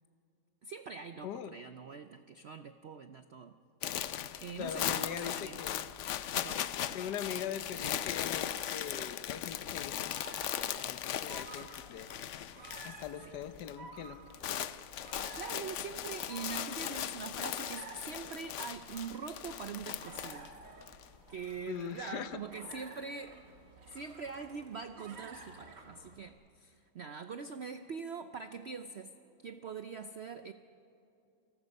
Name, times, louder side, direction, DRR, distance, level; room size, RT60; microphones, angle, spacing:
voice 1, 0.6-3.5 4.4-5.7 6.3-7.6 11.6-11.9 15.3-20.5 21.3-23.4 23.9-29.1 29.4-30.5, right 5 dB, 85° right, 9 dB, 0.5 m, -43 dB
voice 2, 1.2-1.6 4.6-5.7 6.9-12.1 12.8-14.2 21.7-22.4, left 9 dB, 65° left, 12 dB, 1.4 m, -42 dB
sound 1, 3.8-13.1 13.4-13.7 14.0-21.0, left 10 dB, 85° left, 0.6 m, -38 dB
sound 2, 10.2-26.3, right 3 dB, 65° right, 2.8 m, -53 dB
28.0 x 19.0 x 5.4 m, 2.7 s
omnidirectional pair, 2.0 m